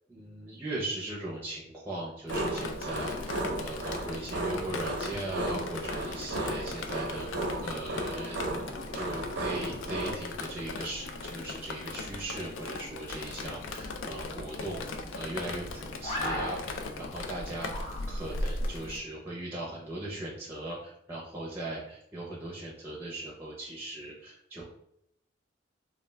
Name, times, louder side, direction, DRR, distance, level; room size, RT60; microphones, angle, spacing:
voice 1, 0.1-8.4 8.9-24.6, right 1 dB, 10° right, -5 dB, 0.5 m, -39 dB
Drip, 2.3-19.0, left 3 dB, 85° left, 0.3 m, -39 dB
sound 1, 2.3-10.1, right 1 dB, 75° right, 0.5 m, -35 dB
sound 2, 13.3-18.5, left 1 dB, 35° left, 0.6 m, -40 dB
2.3 x 2.2 x 3.2 m, 0.75 s
head